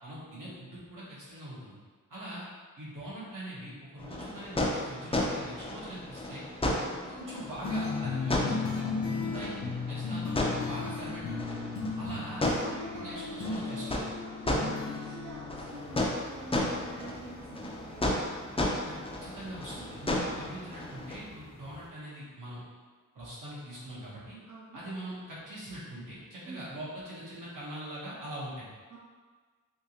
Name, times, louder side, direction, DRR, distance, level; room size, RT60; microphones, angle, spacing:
voice 1, 0.0-1.7 2.1-2.4 2.8-6.4 6.9-9.5 9.9-11.4 11.9-12.5 13.0-14.0 18.9-19.0 19.2-22.6 23.1-24.4 24.7-28.7, right 1 dB, 80° right, -8 dB, 1.3 m, -42 dB
sound 1, 4.0-21.2, left 1 dB, 20° left, 0.4 m, -34 dB
sound 2, 7.6-16.1, left 4 dB, 60° left, 0.6 m, -35 dB
voice 2, 12.4-18.7 24.5-24.8 26.5-26.7 28.9-29.0, right 2 dB, 55° right, -5 dB, 0.6 m, -46 dB
sound 3, 15.7-21.9, equal, 80° left, 1.0 m, -53 dB
3.5 x 2.6 x 2.9 m, 1.5 s
wide cardioid pair, 80°, 32 cm